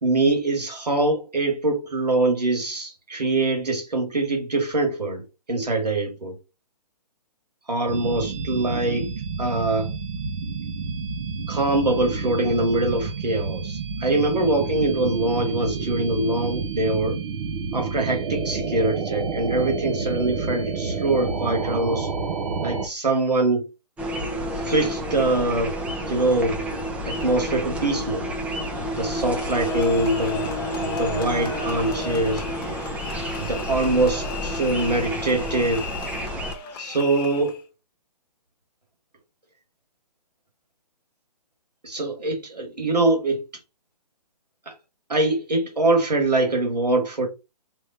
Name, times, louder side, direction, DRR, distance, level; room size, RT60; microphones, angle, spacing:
voice 1, 0.0-5.2 5.5-6.3 7.7-9.1 9.4-9.9 11.5-17.2 17.7-22.1 22.6-23.6 24.7-25.7 26.1-26.6 27.0-28.3 29.0-30.5 30.8-32.5 33.4-35.9 36.8-37.6 41.8-43.4 45.1-47.3, right 2 dB, 90° right, 2.2 m, -23 dB
sound 1, 7.9-22.9, right 4 dB, 45° right, 0.8 m, -29 dB
sound 2, 24.0-36.5, equal, 5° right, 0.5 m, -30 dB
sound 3, 28.7-37.6, left 6 dB, 35° left, 1.1 m, -36 dB
3.6 x 3.1 x 4.1 m
hypercardioid pair, 140°, 20 cm